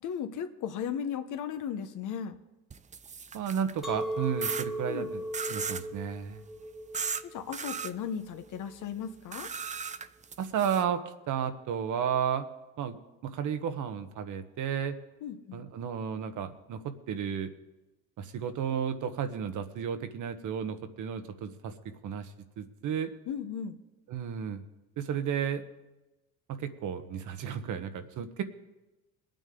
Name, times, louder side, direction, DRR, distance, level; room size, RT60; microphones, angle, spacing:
voice 1, 0.0-2.4 4.9-5.1 7.2-9.5 15.2-15.6 23.3-23.8, left 8 dB, 60° left, 8 dB, 1.2 m, -36 dB
sound 1, 2.7-3.8 4.4-4.7 5.3-5.9 6.9-7.2 7.5-7.9 9.3-10.8, right 6 dB, 20° right, 0.5 m, -36 dB
voice 2, 3.3-5.2 5.5-6.4 10.4-11.0 11.3-12.5 12.8-15.0 15.5-17.5 18.2-21.7 22.0-22.3 22.6-23.1 24.1-24.6 25.0-25.6 26.5-28.4, right 8 dB, 60° right, 8 dB, 1.2 m, -33 dB
Chink clink, 3.8-9.0, right 1 dB, ahead, 1.0 m, -38 dB
21.5 x 9.1 x 3.8 m, 1.0 s
cardioid pair, 100°, 35 cm